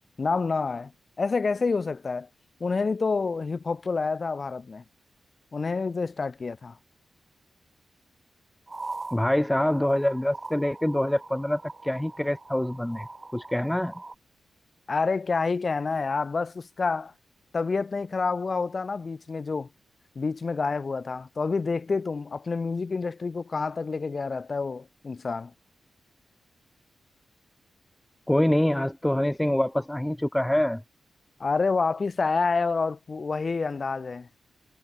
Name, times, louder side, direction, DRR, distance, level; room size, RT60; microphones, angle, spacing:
voice 1, 0.2-0.9 1.2-2.3 2.6-4.8 5.5-6.7 14.9-17.1 17.5-19.7 20.1-25.5 31.4-34.3, left 4 dB, 45° left, 2.9 m, -28 dB
sound 1, 8.7-14.1, right 3 dB, 25° right, 2.0 m, -42 dB
voice 2, 9.1-13.1 13.3-13.9 28.3-30.8, left 1 dB, 10° left, 1.4 m, -25 dB
cardioid pair, 90°, 0 cm